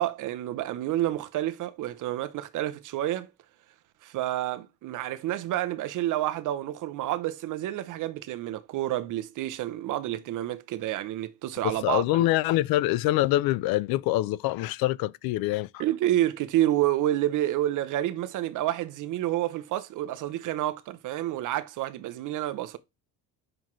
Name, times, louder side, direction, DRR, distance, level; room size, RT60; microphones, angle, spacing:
voice 1, 0.0-3.3 4.0-12.0 15.8-22.8, right 13 dB, 55° right, 0.6 m, -29 dB
voice 2, 11.6-15.8, left 16 dB, 75° left, 0.5 m, -25 dB
7.8 x 5.9 x 3.0 m
cardioid pair, 160°, 36 cm